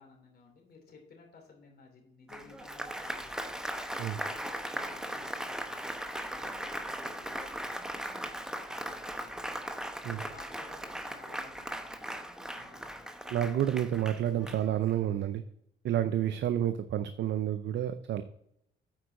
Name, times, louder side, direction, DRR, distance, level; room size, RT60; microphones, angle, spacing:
voice 1, 0.0-5.9 6.3-9.7 10.1-13.1, left 4 dB, 55° left, 2 dB, 2.9 m, -56 dB
Applause, 2.3-15.0, equal, 5° right, 0.8 m, -38 dB
voice 2, 13.3-15.4 15.8-18.2, right 11 dB, 65° right, 10 dB, 0.6 m, -30 dB
9.2 x 4.7 x 5.1 m, 0.74 s
cardioid pair, 90°, 20 cm